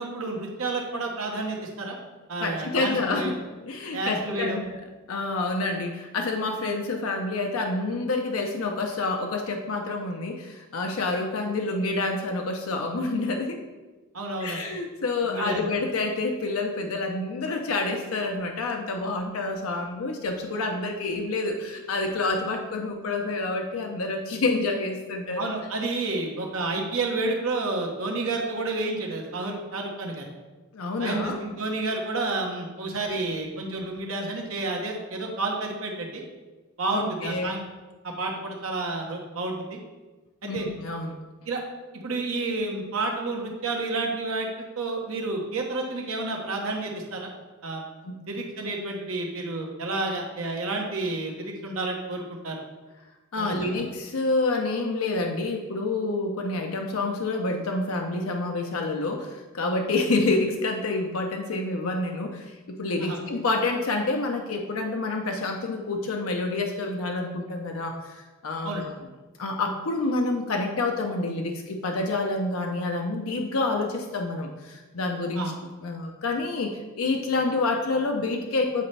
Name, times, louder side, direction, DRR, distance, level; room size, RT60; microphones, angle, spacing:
voice 1, 0.0-2.0 2.3-3.3 3.9-4.6 14.1-14.6 15.2-15.6 25.4-30.3 31.0-36.2 36.8-37.6 38.0-39.8 40.4-40.7 41.5-41.6 41.9-47.3 47.6-47.8 48.3-52.6 53.4-53.5 63.0-63.2 68.6-68.8 75.4-75.5, right 2 dB, 80° right, 0 dB, 1.1 m, -30 dB
voice 2, 2.4-3.3 3.6-4.7 5.1-13.6 14.4-25.5 30.7-31.4 36.9-37.5 40.4-41.2 48.0-48.2 53.3-69.0 69.4-75.4 75.8-78.9, left 3 dB, 85° left, 3 dB, 0.6 m, -28 dB
8.3 x 4.2 x 3.3 m, 1.2 s
head